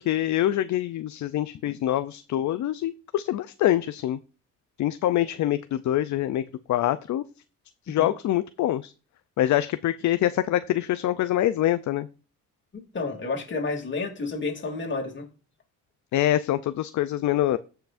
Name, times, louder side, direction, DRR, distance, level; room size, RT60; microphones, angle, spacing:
voice 1, 0.1-4.2 4.8-6.4 6.7-7.2 7.9-8.9 9.4-12.1 16.1-17.6, left 13 dB, 65° left, 0.5 m, -25 dB
voice 2, 12.9-15.3, left 3 dB, 35° left, 2.7 m, -30 dB
16.0 x 5.8 x 2.5 m
cardioid pair, 120°, 32 cm